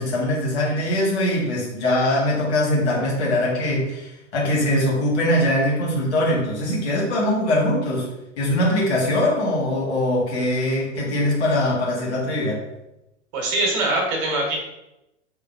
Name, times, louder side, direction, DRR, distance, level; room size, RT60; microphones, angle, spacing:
voice 1, 0.0-8.1 8.4-12.6, left 1 dB, 60° left, -4 dB, 1.3 m, -22 dB
voice 2, 13.3-14.6, right 2 dB, 45° right, 0 dB, 1.2 m, -22 dB
3.8 x 2.9 x 2.5 m, 0.90 s
figure-of-eight pair, 85°, 37 cm